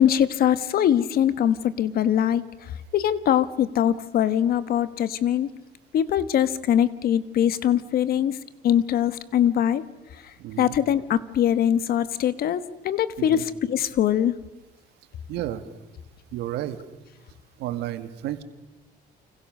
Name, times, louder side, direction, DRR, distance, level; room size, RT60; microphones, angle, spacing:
voice 1, 0.0-2.4 2.9-5.5 5.9-8.3 8.6-9.8 10.6-14.3, left 10 dB, 60° left, 15 dB, 1.4 m, -22 dB
voice 2, 10.4-10.8 13.2-13.5 15.3-15.6 16.3-16.8 17.6-18.4, right 13 dB, 85° right, 10 dB, 2.0 m, -31 dB
29.5 x 25.5 x 6.6 m, 1.1 s
cardioid pair, 110°, 17 cm